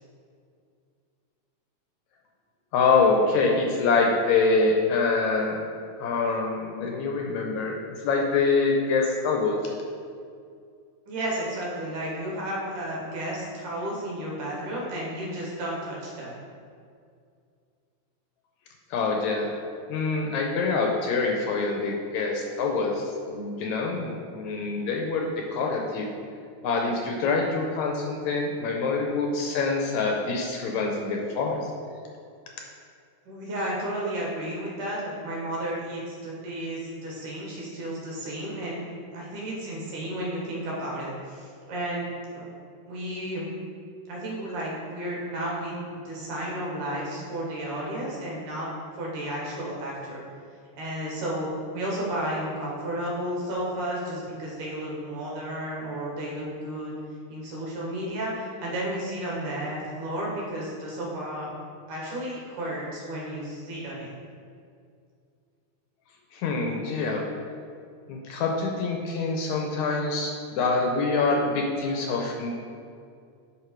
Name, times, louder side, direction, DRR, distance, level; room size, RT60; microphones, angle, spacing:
voice 1, 2.7-5.6 6.0-7.8 8.0-9.7 18.9-19.5 19.9-26.1 26.6-31.7 66.3-67.2 68.1-72.5, left 4 dB, 75° left, 1 dB, 1.9 m, -25 dB
voice 2, 11.1-16.4 33.2-42.4 42.9-43.5 44.1-48.7 48.9-50.2 50.8-56.9 57.3-61.5 61.9-64.1, right 1 dB, 75° right, -4 dB, 3.1 m, -32 dB
11.0 x 3.7 x 4.6 m, 2.3 s
omnidirectional pair, 3.7 m